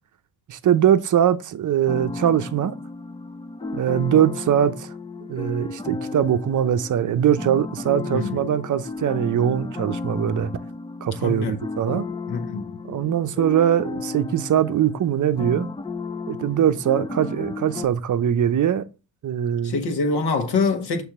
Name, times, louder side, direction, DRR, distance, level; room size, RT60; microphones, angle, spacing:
voice 1, 0.5-2.8 3.7-4.9 5.3-10.5 11.0-12.1 12.9-15.7 16.3-18.9 19.2-19.7, right 9 dB, 40° right, 0.7 m, -21 dB
sound 1, 1.9-17.9, left 3 dB, 10° left, 0.4 m, -34 dB
voice 2, 11.2-11.6 12.3-12.7 19.6-21.0, left 4 dB, 55° left, 1.7 m, -24 dB
6.4 x 3.4 x 5.9 m
cardioid pair, 90°, 46 cm